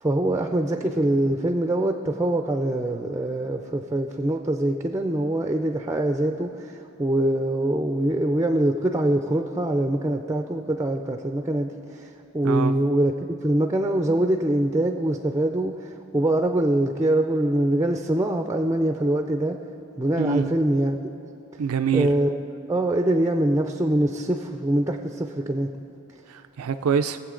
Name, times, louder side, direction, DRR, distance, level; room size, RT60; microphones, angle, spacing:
voice 1, 0.0-13.1 13.4-19.6 20.0-21.0 21.9-22.4 22.7-25.7, right 1 dB, 15° right, 5 dB, 0.4 m, -24 dB
voice 2, 20.2-20.5 21.6-22.1 26.3-27.2, right 6 dB, 85° right, 9 dB, 0.4 m, -24 dB
21.5 x 7.7 x 3.8 m, 2.7 s
head